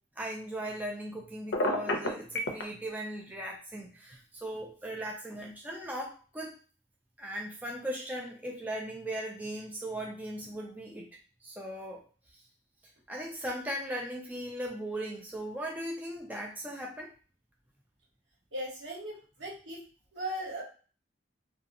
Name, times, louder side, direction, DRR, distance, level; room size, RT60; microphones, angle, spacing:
voice 1, 0.2-6.5 7.2-11.1 11.4-12.0 13.1-17.1, right 1 dB, 10° right, -1 dB, 0.3 m, -38 dB
Telephone, 1.5-2.6, left 1 dB, 65° left, 0.5 m, -28 dB
voice 2, 18.5-19.8 20.1-20.6, right 1 dB, 80° right, -4 dB, 1.2 m, -38 dB
2.6 x 2.3 x 2.6 m, 0.38 s
head